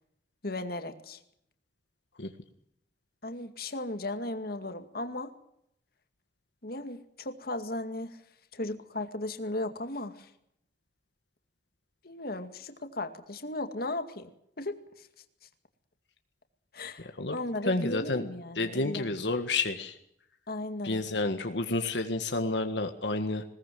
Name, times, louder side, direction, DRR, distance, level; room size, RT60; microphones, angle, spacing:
voice 1, 0.4-1.2 3.2-5.3 6.6-8.2 8.5-10.3 12.0-14.3 14.6-15.1 16.7-19.1 20.5-21.0, left 2 dB, 60° left, 7 dB, 2.2 m, -36 dB
voice 2, 17.7-18.2 18.6-20.0 20.8-23.4, left 2 dB, 80° left, 6 dB, 1.7 m, -30 dB
20.5 x 19.0 x 7.8 m, 0.74 s
head